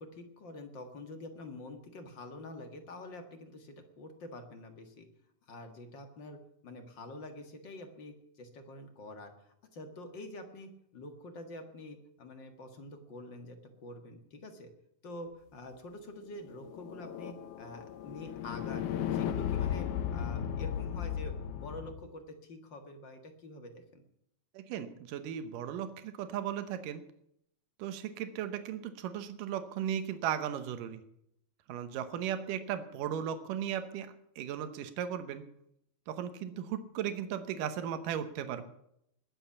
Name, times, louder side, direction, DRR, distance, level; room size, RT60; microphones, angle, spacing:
voice 1, 0.0-5.1 5.5-14.7 15.0-24.0, left 1 dB, 45° left, 6 dB, 1.9 m, -47 dB
sound 1, 16.4-21.9, left 9 dB, 75° left, 2.5 m, -35 dB
voice 2, 24.5-27.0 27.8-31.0 31.7-35.5 36.1-38.6, right 9 dB, 85° right, 10 dB, 2.7 m, -36 dB
20.5 x 7.7 x 7.2 m, 0.74 s
omnidirectional pair, 3.7 m